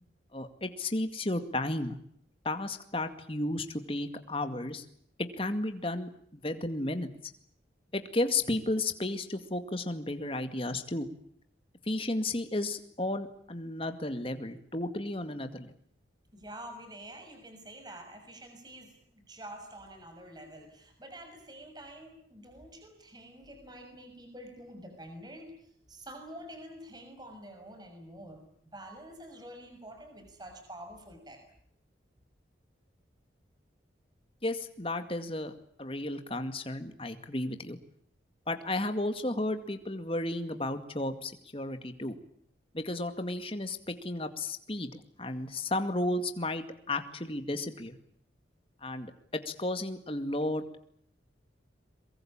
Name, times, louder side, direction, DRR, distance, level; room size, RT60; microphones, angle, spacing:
voice 1, 0.3-2.0 2.4-4.8 5.4-7.3 7.9-11.1 11.9-15.7 34.4-35.5 35.8-37.8 38.5-42.2 42.7-48.0 48.8-50.8, left 2 dB, 30° left, 8 dB, 2.2 m, -33 dB
voice 2, 16.3-31.4, right 1 dB, 20° right, 5 dB, 6.4 m, -47 dB
23.5 x 23.0 x 8.8 m, 0.66 s
head